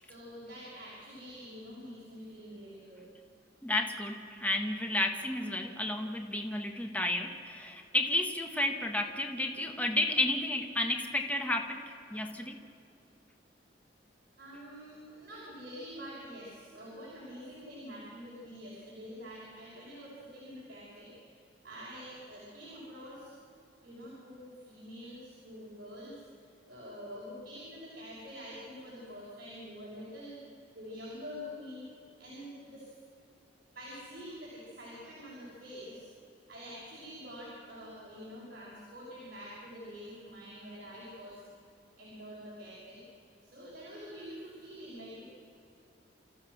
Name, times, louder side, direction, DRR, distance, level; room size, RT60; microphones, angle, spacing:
voice 1, 0.0-3.0 8.5-8.6 14.4-21.1 21.6-23.3 23.8-26.1 26.7-30.4 30.7-31.8 32.2-32.9 33.7-36.1 36.5-41.3 42.0-43.0 43.4-45.2, equal, 55° right, -8 dB, 5.9 m, -46 dB
voice 2, 3.6-12.6, left 1 dB, 10° left, 4 dB, 1.2 m, -32 dB
28.0 x 14.5 x 6.4 m, 2.7 s
head